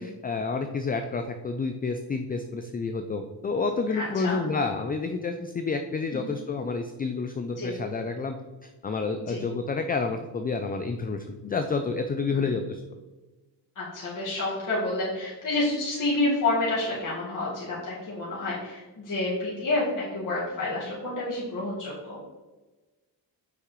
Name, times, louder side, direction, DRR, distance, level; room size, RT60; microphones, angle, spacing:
voice 1, 0.0-8.4 8.6-12.8, left 4 dB, 20° left, 7 dB, 0.4 m, -29 dB
voice 2, 3.9-4.4 6.1-6.2 7.6-7.7 9.3-9.4 12.3-12.5 13.8-22.2, left 2 dB, 45° left, -7 dB, 1.9 m, -29 dB
6.0 x 5.8 x 3.1 m, 1.2 s
cardioid pair, 85°, 42 cm